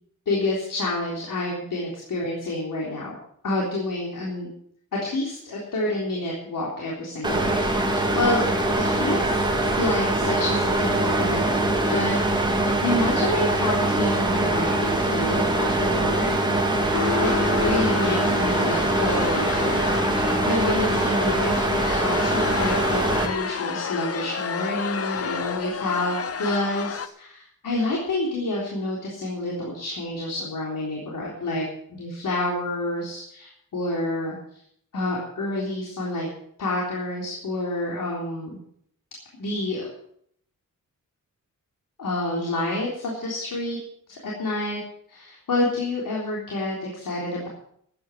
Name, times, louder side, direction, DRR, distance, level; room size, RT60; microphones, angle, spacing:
voice 1, 0.3-3.2 3.4-4.5 4.9-8.5 8.8-16.5 17.2-31.6 31.9-34.4 34.9-36.3 36.6-38.6 39.4-39.9 42.0-43.8 44.1-44.8 45.1-47.5, left 2 dB, 75° left, -3 dB, 3.7 m, -28 dB
sound 1, 7.2-23.3, right 2 dB, 15° right, 2.0 m, -23 dB
sound 2, 16.9-27.1, left 7 dB, 45° left, 0.9 m, -30 dB
13.5 x 9.6 x 7.5 m, 0.68 s
wide cardioid pair, 140°, 33 cm